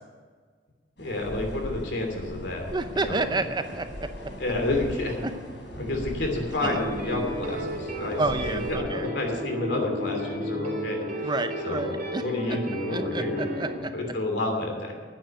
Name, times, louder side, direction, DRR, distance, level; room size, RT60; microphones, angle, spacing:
sound 1, 1.0-8.8, equal, 90° left, 3.9 m, -39 dB
voice 1, 1.0-2.7 2.9-3.2 4.4-5.2 5.8-8.2 8.5-11.3 11.6-11.9 12.2-13.4 13.9-14.9, left 2 dB, 70° left, 2 dB, 3.0 m, -29 dB
voice 2, 2.7-4.1 5.2-5.3 6.6-6.8 8.2-9.1 11.2-12.6 12.9-13.9, right 2 dB, 25° right, 9 dB, 0.7 m, -30 dB
sound 2, 6.7-13.8, equal, 50° right, 3.0 m, -33 dB
9.9 x 9.0 x 9.2 m, 1.5 s
head